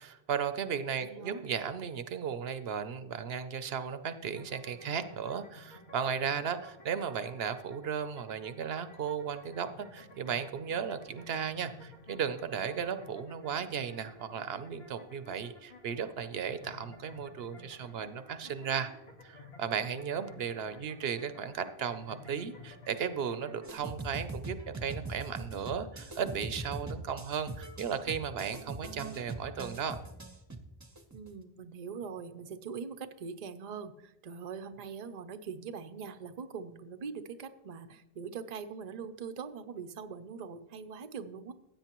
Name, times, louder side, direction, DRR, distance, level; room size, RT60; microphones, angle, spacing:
voice 1, 0.0-18.9 19.2-30.0, right 7 dB, 70° right, 11 dB, 0.9 m, -35 dB
voice 2, 1.0-1.4 31.1-41.5, right 6 dB, 45° right, 9 dB, 0.7 m, -42 dB
sound 1, 4.3-23.7, left 2 dB, 75° left, 1.9 m, -53 dB
sound 2, 23.6-31.3, right 2 dB, 20° right, 0.8 m, -41 dB
15.5 x 8.7 x 3.0 m, 0.96 s
omnidirectional pair, 1.1 m